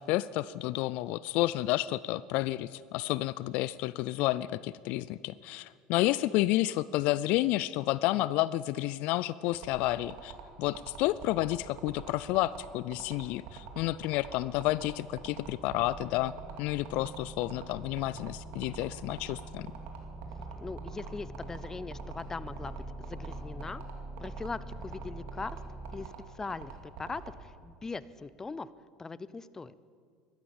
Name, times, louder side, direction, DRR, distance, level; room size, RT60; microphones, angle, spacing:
voice 1, 0.0-16.3 16.6-19.7, left 16 dB, 65° left, 19 dB, 0.3 m, -30 dB
sound 1, 9.5-27.3, right 9 dB, 70° right, 2.7 m, -45 dB
sound 2, 14.3-26.1, right 1 dB, 5° left, 1.7 m, -45 dB
voice 2, 20.6-23.8 24.2-25.6 25.9-28.7 29.0-29.7, left 4 dB, 20° left, 17 dB, 0.6 m, -40 dB
15.0 x 12.5 x 7.2 m, 2.1 s
hypercardioid pair, 80°, 2 cm